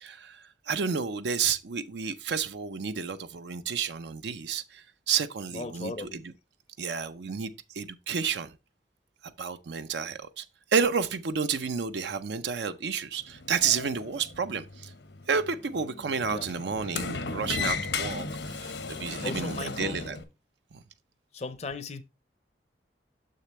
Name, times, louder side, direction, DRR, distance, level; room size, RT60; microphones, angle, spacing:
voice 1, 0.0-6.3 6.8-8.5 9.4-10.4 10.7-14.9 15.3-20.2 20.7-20.8, right 6 dB, 75° right, 0.5 m, -31 dB
voice 2, 5.5-6.2 16.3-16.5 19.2-20.0 21.3-22.0, left 3 dB, 40° left, 0.5 m, -36 dB
Sliding door, 13.2-20.2, left 4 dB, 90° left, 1.0 m, -36 dB
6.6 x 6.6 x 3.0 m
head